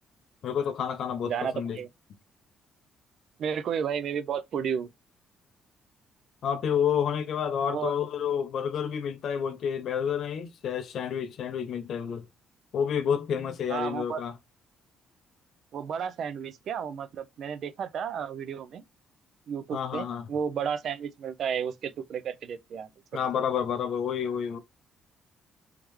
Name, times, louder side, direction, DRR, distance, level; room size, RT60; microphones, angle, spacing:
voice 1, 0.4-1.8 6.4-12.2 12.7-14.3 19.7-20.3 23.1-24.6, left 8 dB, 55° left, 0.6 m, -29 dB
voice 2, 1.2-1.9 3.4-4.9 7.7-7.9 13.7-14.2 15.7-18.8 19.5-22.9, right 7 dB, 55° right, 0.4 m, -32 dB
3.5 x 3.2 x 3.0 m
cardioid pair, 150°, 0 cm